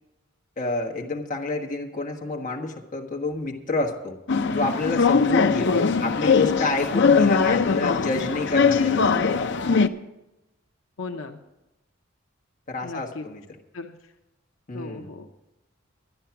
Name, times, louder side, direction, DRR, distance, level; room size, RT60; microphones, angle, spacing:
voice 1, 0.6-4.2 4.5-5.7 6.0-9.4 12.7-13.4 14.7-15.1, left 2 dB, 40° left, 0 dB, 1.4 m, -29 dB
sound 1, 4.3-9.9, left 5 dB, 60° left, 0.5 m, -21 dB
voice 2, 5.4-6.1 11.0-11.4 12.8-13.2 13.7-13.9 14.7-15.3, left 3 dB, 80° left, 3 dB, 0.8 m, -34 dB
12.0 x 10.0 x 5.8 m, 0.96 s
head